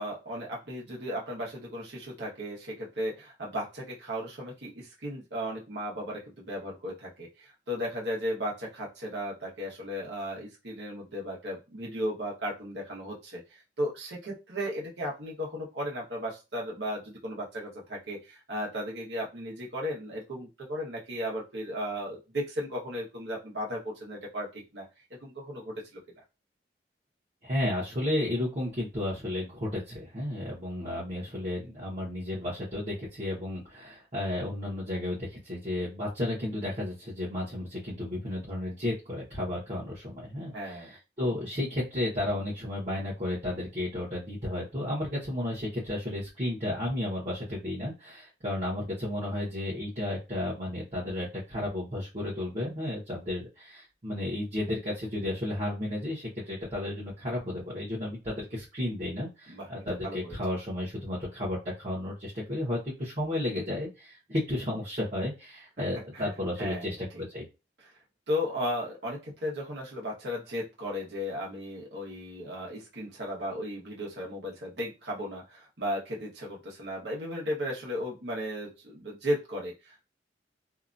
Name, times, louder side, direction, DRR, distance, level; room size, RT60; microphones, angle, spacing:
voice 1, 0.0-26.0 40.5-40.9 59.5-60.3 65.8-65.9 66.1-66.3 66.6-67.0 67.8-67.9 68.3-80.1, equal, 70° right, -3 dB, 1.1 m, -35 dB
voice 2, 27.4-67.4, left 1 dB, 40° right, -8 dB, 1.0 m, -33 dB
2.8 x 2.4 x 2.5 m, 0.28 s
head